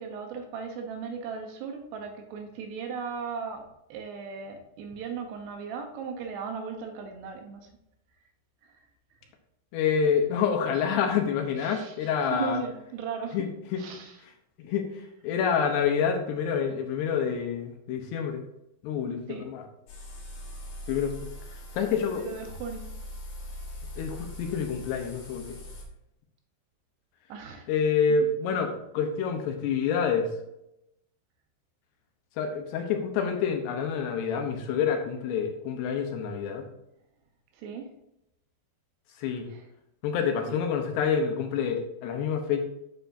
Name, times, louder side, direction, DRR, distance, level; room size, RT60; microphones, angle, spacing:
voice 1, 0.0-7.7 11.6-13.5 13.8-14.2 19.3-19.5 22.0-22.9 27.3-27.7 37.6-37.9 39.5-39.6, right 5 dB, 75° right, 5 dB, 2.8 m, -37 dB
voice 2, 9.7-12.6 13.3-13.8 14.6-14.9 15.2-18.4 18.8-19.6 20.9-21.3 21.7-22.2 24.0-25.5 27.7-30.3 32.4-36.6 39.2-39.5 40.0-42.6, left 6 dB, 75° left, 4 dB, 2.8 m, -27 dB
sound 1, 19.9-25.8, equal, 55° left, 1.9 m, -41 dB
9.2 x 7.7 x 2.6 m, 0.83 s
omnidirectional pair, 5.2 m